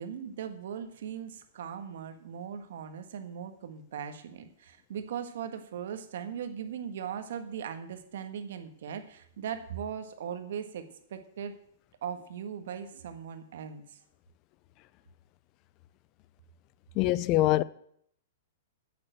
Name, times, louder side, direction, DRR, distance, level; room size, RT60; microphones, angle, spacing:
voice 1, 0.0-11.6 12.0-14.0, right 8 dB, 70° right, 1.5 m, -39 dB
voice 2, 17.0-17.6, left 16 dB, 35° left, 0.4 m, -24 dB
9.0 x 7.7 x 7.8 m
hypercardioid pair, 140°, 0 cm